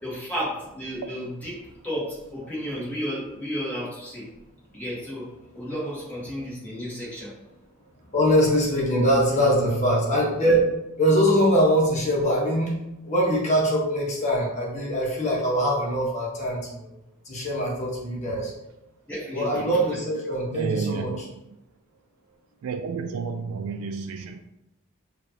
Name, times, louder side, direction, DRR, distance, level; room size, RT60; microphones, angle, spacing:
voice 1, 0.0-4.3 4.7-5.3 5.5-7.3 19.1-19.8, equal, 5° left, -7 dB, 1.7 m, -33 dB
voice 2, 8.1-10.6 11.0-12.7 13.0-16.9 17.2-18.5 19.3-21.3, equal, 35° left, -3 dB, 1.3 m, -23 dB
voice 3, 9.3-10.2 18.3-18.4 20.5-21.2 22.6-24.4, right 5 dB, 80° right, 5 dB, 0.3 m, -31 dB
6.5 x 2.6 x 2.9 m, 0.91 s
head